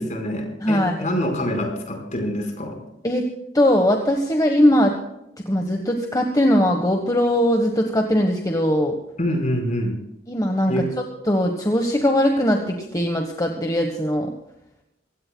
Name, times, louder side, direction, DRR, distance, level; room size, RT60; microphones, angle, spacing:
voice 1, 0.0-2.8 9.2-9.9 10.7-10.9, equal, 40° left, 2 dB, 4.8 m, -25 dB
voice 2, 0.6-1.1 3.0-3.2 3.5-4.9 5.5-8.9 10.3-10.7 11.3-14.3, equal, 20° left, 3 dB, 1.3 m, -20 dB
25.0 x 16.5 x 2.3 m, 0.86 s
head